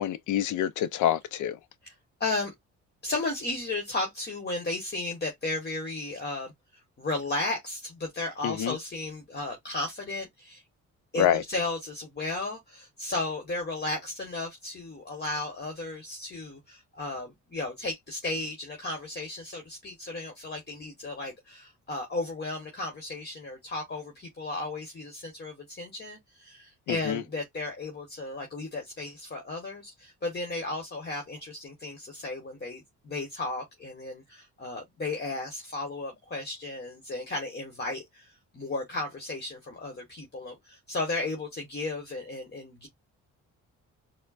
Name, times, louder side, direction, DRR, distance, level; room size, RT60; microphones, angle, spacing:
voice 1, 0.0-1.6 8.4-8.8 11.1-11.4 26.9-27.2, left 11 dB, 75° left, 0.5 m, -27 dB
voice 2, 2.2-2.5 3.0-6.5 7.0-10.6 11.1-42.9, left 2 dB, 35° left, 1.4 m, -34 dB
4.3 x 2.2 x 2.4 m
cardioid pair, 90°, 30 cm